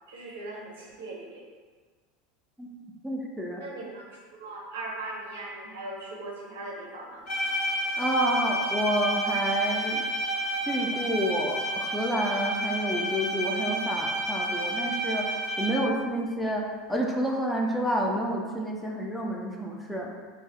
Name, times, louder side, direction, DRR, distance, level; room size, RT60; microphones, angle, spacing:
voice 1, 0.1-1.4 3.6-7.3, right 2 dB, 70° right, -3 dB, 0.7 m, -39 dB
voice 2, 3.0-3.6 8.0-10.0 10.7-16.6 16.9-20.1, equal, ahead, -2 dB, 0.4 m, -29 dB
Bowed string instrument, 7.3-16.0, right 1 dB, 55° left, 1.1 m, -30 dB
2.4 x 2.3 x 3.7 m, 1.5 s
figure-of-eight pair, 80°, 0 cm